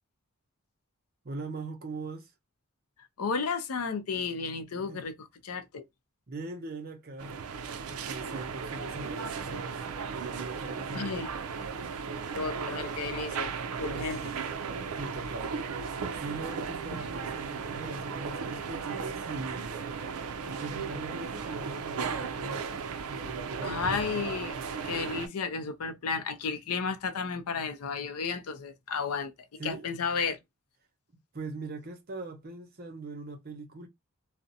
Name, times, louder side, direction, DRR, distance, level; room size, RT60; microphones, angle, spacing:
voice 1, 1.2-2.3 4.9-5.1 6.3-7.4 7.9-9.8 10.1-11.3 14.2-14.4 14.9-15.9 16.1-19.8 20.1-22.7 23.1-23.8 29.6-29.9 31.3-33.9, right 3 dB, 40° right, 0.6 m, -41 dB
voice 2, 3.2-5.1 5.4-5.8 10.9-11.3 12.4-14.2 23.6-24.5 24.8-29.3 29.6-30.4, left 5 dB, 85° left, 0.5 m, -33 dB
sound 1, 7.2-25.3, right 5 dB, 80° right, 0.4 m, -36 dB
2.4 x 2.1 x 2.7 m
head